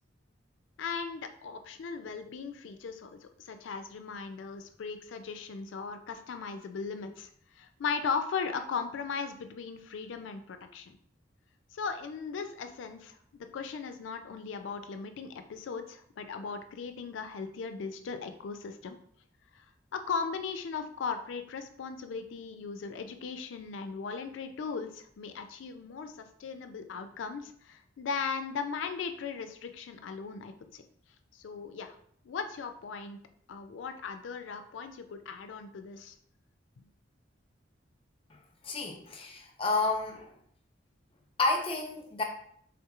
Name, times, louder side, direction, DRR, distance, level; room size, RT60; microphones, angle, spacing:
voice 1, 0.8-11.0 11.7-13.2 13.5-19.0 19.5-19.6 19.9-30.8 31.3-31.9 32.2-33.2 33.5-36.1 36.8-36.9, left 5 dB, 85° left, 8 dB, 0.4 m, -38 dB
voice 2, 38.6-40.3 41.4-42.2, left 3 dB, 30° left, 2 dB, 0.5 m, -30 dB
3.6 x 2.9 x 2.3 m, 0.63 s
head